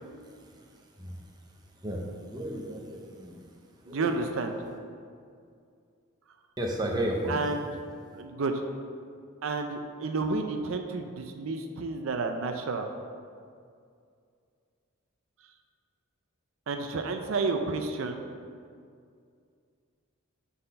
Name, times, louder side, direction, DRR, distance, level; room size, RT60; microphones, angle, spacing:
voice 1, 2.3-3.3 3.9-4.2 6.6-7.4, right 1 dB, 20° right, 0 dB, 0.7 m, -32 dB
voice 2, 3.9-4.6 7.3-7.8 8.2-8.6 9.4-12.9 16.7-18.2, right 3 dB, 75° right, 5 dB, 0.5 m, -31 dB
7.8 x 4.2 x 5.2 m, 2.3 s
head